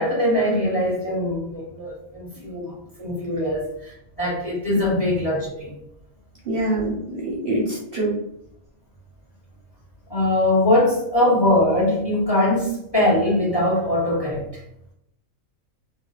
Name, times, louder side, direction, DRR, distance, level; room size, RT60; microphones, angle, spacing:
voice 1, 0.0-5.7 10.1-14.6, left 1 dB, 20° left, -5 dB, 0.8 m, -22 dB
voice 2, 6.4-8.1, right 1 dB, 55° right, -4 dB, 0.7 m, -25 dB
2.7 x 2.1 x 3.8 m, 0.75 s
omnidirectional pair, 1.4 m